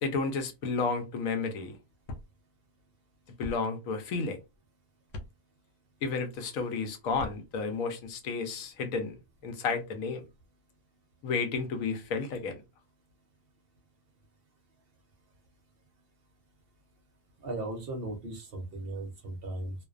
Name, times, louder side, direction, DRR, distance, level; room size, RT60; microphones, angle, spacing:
voice 1, 0.0-1.8 3.4-4.4 6.0-10.2 11.2-12.6, left 4 dB, 85° left, 1.0 m, -32 dB
sound 1, 2.1-2.3 3.4-3.6 5.1-5.3 7.1-7.4, left 1 dB, 65° left, 0.7 m, -39 dB
voice 2, 17.4-19.7, right 2 dB, 55° right, 0.7 m, -37 dB
2.5 x 2.1 x 2.3 m
omnidirectional pair, 1.4 m